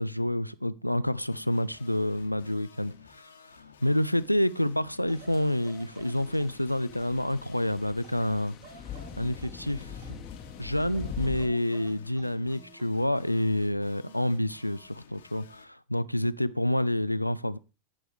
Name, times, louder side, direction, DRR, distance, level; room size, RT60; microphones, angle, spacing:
voice 1, 0.0-10.1 10.6-17.6, left 1 dB, 90° left, 0.4 m, -28 dB
sound 1, 1.3-15.6, left 8 dB, 65° left, 1.4 m, -55 dB
sound 2, 5.1-11.5, left 8 dB, 30° left, 1.1 m, -43 dB
sound 3, 5.1-7.3 8.0-10.4 10.8-13.0 14.1-14.3, right 7 dB, 45° right, 1.2 m, -53 dB
17.5 x 6.2 x 3.3 m
figure-of-eight pair, 90°, 0 cm